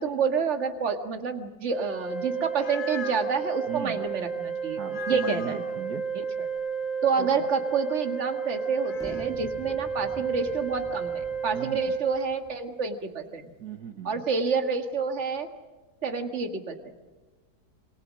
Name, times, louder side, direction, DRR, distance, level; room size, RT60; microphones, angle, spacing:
voice 1, 0.0-4.8 5.1-5.6 6.1-6.5 7.0-13.5 14.0-15.5 16.0-16.9, right 5 dB, 40° right, 6 dB, 2.1 m, -28 dB
Organ, 1.7-12.7, right 6 dB, 25° left, 2.1 m, -32 dB
sound 1, 2.2-3.4 4.8-5.8 8.6-9.3, left 7 dB, 65° left, 1.7 m, -40 dB
voice 2, 3.7-4.0 4.8-6.0 7.2-7.5 11.5-11.8 13.6-14.3, right 6 dB, 65° right, 6 dB, 2.0 m, -37 dB
sound 2, 8.9-12.6, equal, ahead, 1.7 m, -46 dB
27.0 x 24.0 x 6.4 m, 1.3 s
omnidirectional pair, 1.8 m